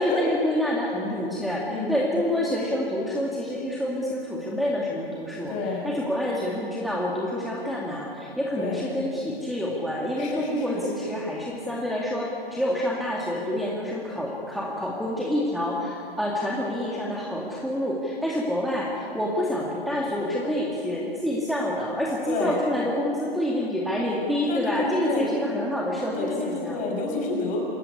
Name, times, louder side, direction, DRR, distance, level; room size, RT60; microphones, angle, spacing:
voice 1, 0.0-5.6 5.8-26.8, left 1 dB, ahead, -4 dB, 2.4 m, -27 dB
voice 2, 5.5-5.9 8.6-8.8 10.2-10.8 22.3-22.6 24.5-25.3 26.1-27.6, left 3 dB, 25° left, 1 dB, 6.5 m, -29 dB
26.5 x 15.5 x 9.6 m, 2.7 s
figure-of-eight pair, 120°, 31 cm